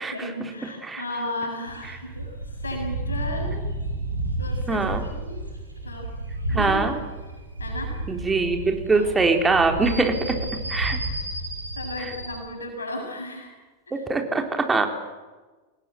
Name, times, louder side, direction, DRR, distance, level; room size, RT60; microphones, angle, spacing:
voice 1, 0.0-3.6 4.4-5.5 5.8-6.1 6.5-7.0 7.6-7.9 8.5-8.6 8.9-9.3 11.1-11.2 11.7-13.5 13.9-14.1, left 1 dB, 75° left, 2 dB, 7.3 m, -35 dB
sound 1, 1.7-12.4, right 2 dB, 85° right, 5.2 m, -31 dB
voice 2, 4.7-5.0 6.5-6.9 8.1-10.4 10.7-11.0 13.9-14.9, right 3 dB, 15° right, 4 dB, 3.9 m, -22 dB
27.0 x 20.0 x 9.2 m, 1.3 s
figure-of-eight pair, 90°, 0 cm